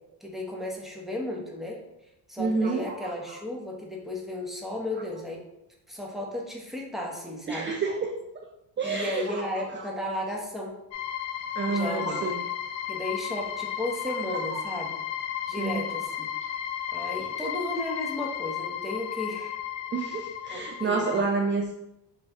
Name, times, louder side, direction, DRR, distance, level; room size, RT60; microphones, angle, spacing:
voice 1, 0.2-1.8 2.3-5.4 5.9-7.8 8.8-10.8 11.7-12.2 12.9-15.0 15.5-16.3 16.9-19.5 20.5-21.2, left 1 dB, ahead, -1 dB, 0.9 m, -34 dB
voice 2, 2.4-3.2 7.5-8.2 8.8-9.6 11.6-12.4 14.5-14.6 15.6-15.8 19.9-21.8, right 4 dB, 30° right, 3 dB, 0.4 m, -29 dB
sound 1, 10.9-21.2, left 10 dB, 80° left, 0.6 m, -34 dB
4.1 x 3.1 x 3.4 m, 0.88 s
cardioid pair, 100°, 44 cm